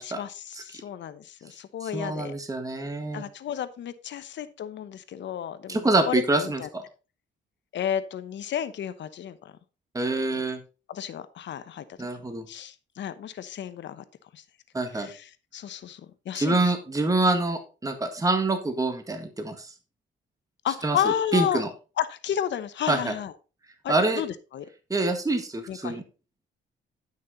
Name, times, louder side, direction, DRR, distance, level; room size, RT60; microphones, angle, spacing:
voice 1, 0.0-2.3 3.1-6.7 7.7-9.5 10.9-11.8 12.5-14.0 14.3-14.4 14.9-16.7 20.6-21.6 22.0-23.3 23.8-24.7 25.7-26.0, left 10 dB, 65° left, 13 dB, 1.0 m, -32 dB
voice 2, 1.8-3.2 5.7-6.8 9.9-10.6 12.0-12.5 14.7-15.1 16.3-19.7 20.8-21.7 22.9-23.1 23.9-24.2 24.9-26.0, right 2 dB, 15° right, 6 dB, 1.7 m, -26 dB
10.5 x 6.4 x 4.0 m, 0.32 s
cardioid pair, 90°, 20 cm